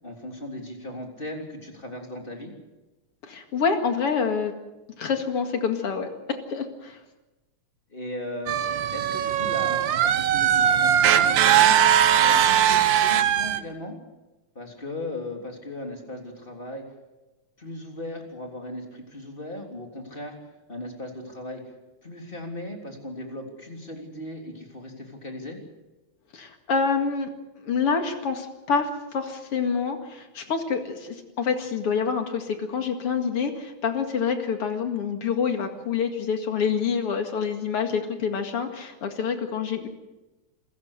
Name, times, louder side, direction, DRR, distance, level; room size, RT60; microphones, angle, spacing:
voice 1, 0.0-2.5 7.9-8.6 8.9-11.8 12.2-14.0 14.6-16.8 17.6-20.4 20.7-21.6 22.0-25.6, left 1 dB, 15° left, 2 dB, 3.4 m, -37 dB
voice 2, 3.2-4.5 5.0-7.0 26.3-27.3 27.6-39.9, left 6 dB, 50° left, 5 dB, 2.8 m, -27 dB
sound 1, 8.5-13.6, right 10 dB, 85° right, 1.0 m, -20 dB
27.5 x 16.0 x 6.7 m, 1.1 s
omnidirectional pair, 3.3 m